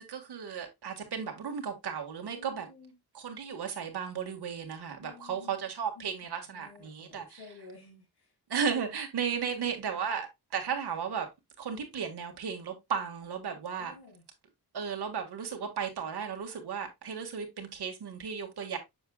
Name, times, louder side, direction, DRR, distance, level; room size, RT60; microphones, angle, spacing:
voice 1, 0.0-2.7 3.1-7.4 8.5-11.3 11.6-13.9 14.7-18.8, right 7 dB, 80° right, 1.7 m, -35 dB
voice 2, 2.3-2.9 5.0-5.6 6.0-6.1 6.5-8.4 9.4-9.6 13.8-14.2, left 4 dB, 75° left, 1.9 m, -52 dB
7.0 x 6.1 x 2.3 m
wide cardioid pair, 135°, 40 cm